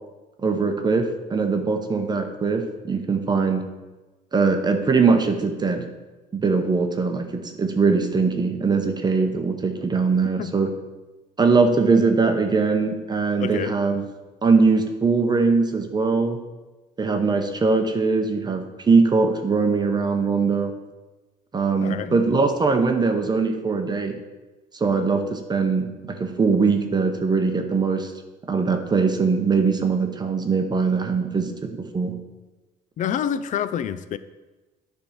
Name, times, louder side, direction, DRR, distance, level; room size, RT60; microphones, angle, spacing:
voice 1, 0.4-3.7 4.3-5.9 6.3-10.7 11.4-14.0 14.4-16.4 17.0-20.7 21.5-24.2 24.7-28.1 28.5-32.2, right 4 dB, 25° right, 5 dB, 0.8 m, -21 dB
voice 2, 13.4-13.8 21.7-22.2 33.0-34.2, left 9 dB, 50° left, 13 dB, 0.5 m, -27 dB
9.7 x 3.6 x 5.8 m, 1.2 s
cardioid pair, 110°, 17 cm